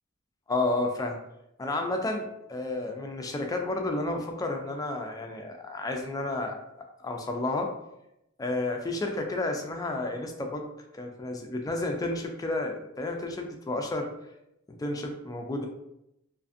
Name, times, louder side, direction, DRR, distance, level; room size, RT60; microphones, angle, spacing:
voice 1, 0.5-1.2 1.6-6.6 7.0-7.7 8.4-14.1 14.7-15.7, left 2 dB, 20° left, 3 dB, 0.3 m, -31 dB
2.5 x 2.5 x 2.5 m, 0.84 s
head